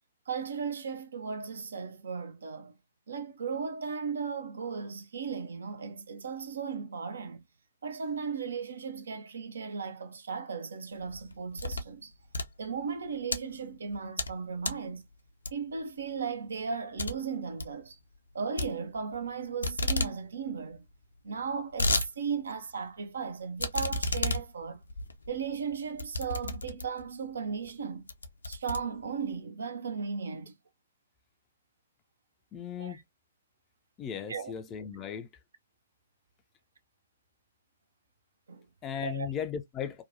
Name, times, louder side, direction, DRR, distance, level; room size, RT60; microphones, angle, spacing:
voice 1, 0.3-2.7 3.1-7.4 7.8-12.1 12.6-15.0 15.5-18.0 18.3-20.8 21.2-24.8 25.3-28.0 28.5-30.5 32.8-33.0 34.3-34.5 38.5-38.7 39.0-39.3, right 5 dB, 60° right, 0.5 m, -36 dB
sound 1, 11.0-11.9 12.2-13.4 13.9-14.3 14.6-14.9 15.4-15.8 16.2-16.3 16.6-16.7 17.0-17.1 17.4-17.7 18.6-19.3 19.6-20.1 20.5-20.6 20.7-20.8 21.4-22.1 22.5-22.6 23.6-27.1 27.6-27.8 28.1-29.3, left 2 dB, 70° left, 0.5 m, -32 dB
voice 2, 32.5-33.0 34.0-35.3 38.8-40.0, left 8 dB, 20° left, 0.4 m, -36 dB
2.8 x 2.2 x 2.5 m
figure-of-eight pair, 120°, 0 cm